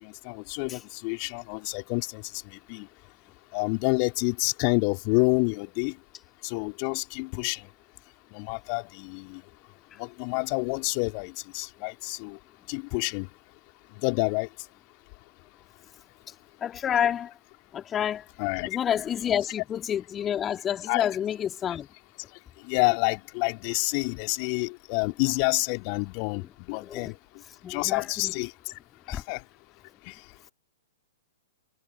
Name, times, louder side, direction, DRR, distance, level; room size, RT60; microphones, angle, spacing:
voice 1, 0.0-2.9 3.5-5.9 6.4-7.6 8.3-9.4 10.0-12.4 12.7-13.3 14.0-14.5 18.4-18.7 20.9-21.2 22.6-27.1 27.7-28.5 29.1-29.4 30.1-30.2, left 40 dB or more, 35° left, 4.4 m, -28 dB
voice 2, 16.6-17.3 17.7-18.3 18.7-21.9 26.9-27.1 27.6-28.3 29.1-29.2, left 9 dB, 20° left, 3.8 m, -29 dB
figure-of-eight pair, 110°, 0 cm